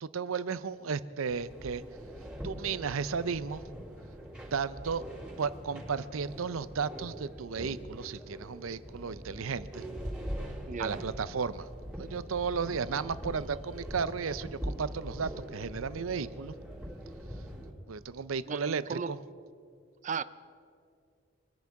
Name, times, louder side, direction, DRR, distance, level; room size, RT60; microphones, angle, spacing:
voice 1, 0.0-1.8 2.4-3.6 4.5-5.0 5.4-9.9 10.8-11.7 12.0-16.5 17.9-19.2, right 5 dB, 85° right, 15 dB, 0.6 m, -34 dB
sound 1, 1.3-17.7, equal, 5° right, 3.4 m, -42 dB
voice 2, 10.6-11.0 18.5-19.1 20.0-20.2, right 6 dB, 40° right, 16 dB, 0.5 m, -35 dB
26.0 x 10.5 x 4.7 m, 2.3 s
head